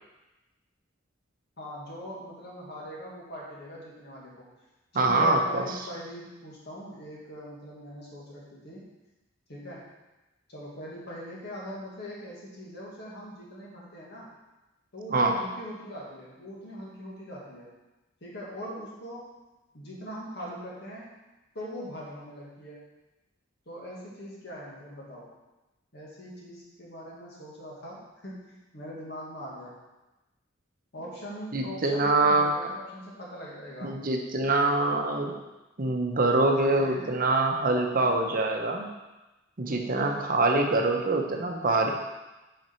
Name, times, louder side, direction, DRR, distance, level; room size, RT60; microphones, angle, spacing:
voice 1, 1.6-4.5 4.9-8.9 9.5-9.8 10.5-14.3 14.9-17.7 18.2-19.3 19.7-21.1 21.5-22.8 23.7-25.3 25.9-29.8 30.9-33.9 36.5-37.1 39.9-40.3, equal, 60° left, -4 dB, 1.9 m, -41 dB
voice 2, 4.9-5.6 15.1-15.3 31.5-32.5 33.8-35.3 35.8-38.9 39.6-41.9, right 2 dB, 45° right, 2 dB, 0.7 m, -24 dB
6.0 x 5.0 x 4.4 m, 1.1 s
head